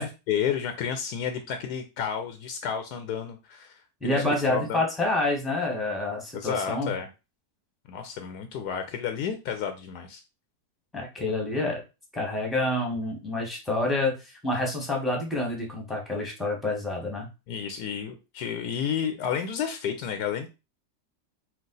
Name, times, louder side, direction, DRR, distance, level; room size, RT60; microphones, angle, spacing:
voice 1, 0.0-4.8 6.3-7.1 7.9-10.2 17.5-20.5, left 8 dB, 80° left, 7 dB, 1.2 m, -31 dB
voice 2, 4.0-7.0 10.9-11.8 12.1-17.3, left 2 dB, ahead, 0 dB, 1.1 m, -28 dB
4.6 x 2.4 x 3.8 m, 0.28 s
omnidirectional pair, 1.7 m